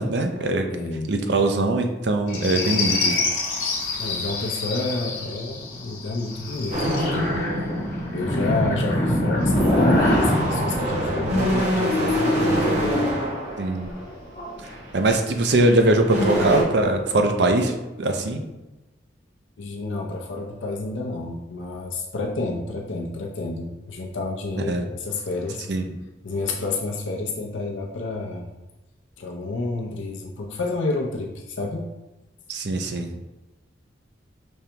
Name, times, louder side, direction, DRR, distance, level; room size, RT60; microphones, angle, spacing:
voice 1, 0.0-0.7 1.1-3.2 13.6-13.9 14.9-18.4 24.7-24.9 25.7-25.8 32.5-33.2, right 2 dB, 65° right, 5 dB, 0.6 m, -21 dB
voice 2, 0.7-1.1 4.0-7.4 8.1-13.2 19.6-25.7 26.2-28.5 29.2-31.9, left 3 dB, 85° left, 0 dB, 0.6 m, -30 dB
sound 1, 2.3-12.0 13.7-14.6 15.6-16.8, left 1 dB, 50° left, 1.3 m, -25 dB
sound 2, 6.7-8.4 9.2-14.0 14.6-14.9 15.6-15.7 15.9-16.6, equal, 40° right, 1.0 m, -25 dB
5.3 x 3.3 x 2.9 m, 1.0 s
head